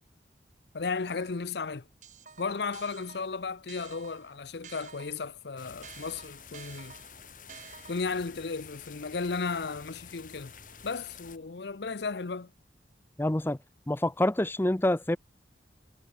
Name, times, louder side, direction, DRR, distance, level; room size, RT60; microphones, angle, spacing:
voice 1, 0.7-1.9 2.4-7.0 7.9-10.5 10.8-12.5, left 4 dB, 70° left, 0.7 m, -34 dB
sound 1, 0.8-1.5 2.0-5.4 5.8-8.3, right 7 dB, 45° right, 1.7 m, -51 dB
sound 2, 5.6-11.4, left 6 dB, 50° left, 3.9 m, -50 dB
voice 2, 13.2-13.6 13.9-15.2, left 1 dB, 10° left, 0.5 m, -26 dB
head